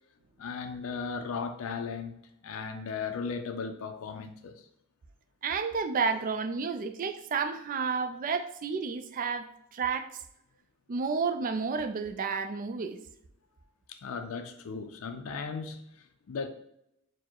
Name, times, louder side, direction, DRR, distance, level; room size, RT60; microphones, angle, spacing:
voice 1, 0.4-2.1 2.4-4.7 13.9-16.5, left 5 dB, 65° left, 0.4 m, -36 dB
voice 2, 5.4-10.2 10.9-13.0, right 5 dB, 40° right, 0.3 m, -31 dB
4.5 x 2.1 x 4.4 m
head